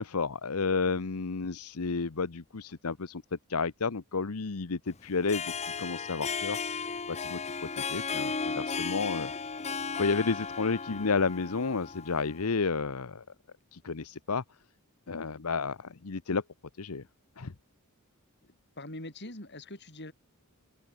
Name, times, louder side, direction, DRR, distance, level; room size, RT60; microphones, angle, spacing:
voice 1, 0.0-3.2 3.5-5.5 5.8-6.6 7.1-9.3 10.0-13.2 13.7-14.4 15.1-16.4 16.8-17.0 17.4-17.5, left 4 dB, 80° left, 0.9 m, -31 dB
Harp, 5.1-12.5, left 5 dB, 30° left, 1.0 m, -35 dB
voice 2, 18.8-20.1, left 1 dB, 50° left, 7.2 m, -42 dB
head